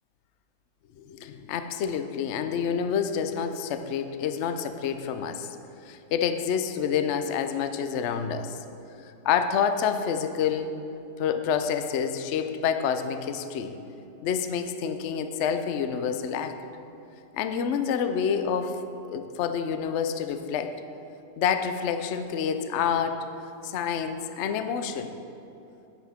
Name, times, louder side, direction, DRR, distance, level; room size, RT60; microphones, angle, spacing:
voice 1, 1.0-5.6 5.9-8.6 9.2-10.8 11.2-13.8 14.2-16.5 17.3-18.8 19.1-20.7 21.4-23.3 23.6-25.1, left 7 dB, 70° left, 8 dB, 0.6 m, -28 dB
10.5 x 8.9 x 4.3 m, 2.9 s
omnidirectional pair, 1.9 m